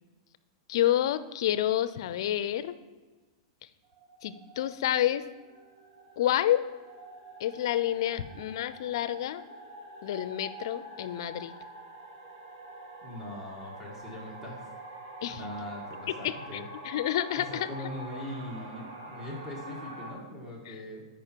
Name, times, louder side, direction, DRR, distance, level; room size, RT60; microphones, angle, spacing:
voice 1, 0.7-2.8 4.2-5.3 6.2-6.6 7.4-9.4 10.0-11.5 15.2-15.4 16.1-17.9 20.7-20.8, left 12 dB, 65° left, 14 dB, 0.5 m, -29 dB
sound 1, 3.8-20.1, right 1 dB, 80° right, 1.8 m, -46 dB
voice 2, 13.0-14.6 15.2-16.6 17.4-21.1, left 1 dB, 10° right, -4 dB, 1.8 m, -41 dB
8.8 x 5.0 x 4.5 m, 1.3 s
hypercardioid pair, 135°, 3 cm